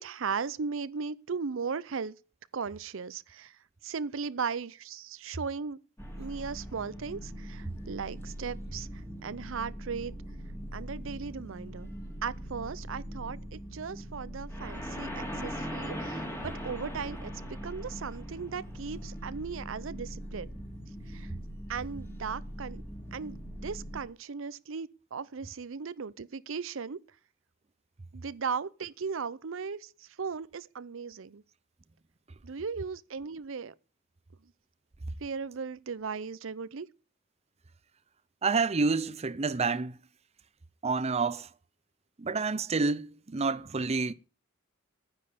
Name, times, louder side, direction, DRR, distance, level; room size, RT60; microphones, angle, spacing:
voice 1, 0.0-2.2 2.5-3.5 3.8-5.8 6.2-8.9 9.2-10.1 10.7-11.9 12.2-20.5 21.1-21.3 21.7-22.8 23.1-27.0 28.1-31.4 32.4-33.7 35.2-36.9, right 5 dB, 70° right, 0.6 m, -37 dB
sound 1, 6.0-24.0, equal, 10° left, 2.7 m, -41 dB
voice 2, 38.4-39.9 40.8-41.5 42.2-44.1, right 4 dB, 30° right, 0.6 m, -28 dB
10.5 x 9.8 x 6.8 m
head